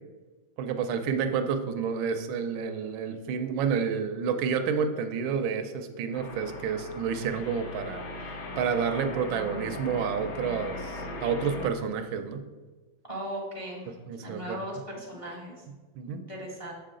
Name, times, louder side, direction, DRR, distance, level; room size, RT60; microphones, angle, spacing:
voice 1, 0.6-8.0 8.6-12.4 13.9-14.6 15.7-16.2, right 6 dB, 80° right, 8 dB, 1.4 m, -30 dB
sound 1, 6.1-11.7, left 2 dB, 60° left, 1.1 m, -38 dB
voice 2, 13.1-13.8 14.2-15.5 16.0-16.7, right 1 dB, 20° left, -3 dB, 0.9 m, -37 dB
7.1 x 5.7 x 3.7 m, 1.3 s
omnidirectional pair, 2.2 m